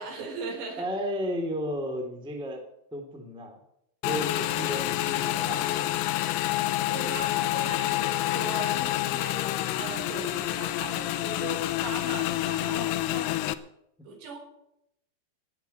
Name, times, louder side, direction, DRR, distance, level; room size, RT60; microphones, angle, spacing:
voice 1, 0.0-0.8 6.5-9.4 9.8-13.3 14.1-14.4, right 3 dB, 80° right, 0 dB, 7.1 m, -39 dB
voice 2, 0.8-2.6 2.9-3.6 4.0-6.0, equal, 5° right, 2 dB, 0.7 m, -33 dB
Motorcycle / Engine, 4.0-13.5, left 15 dB, 80° left, 3.0 m, -28 dB
17.0 x 7.6 x 8.0 m, 0.79 s
omnidirectional pair, 5.7 m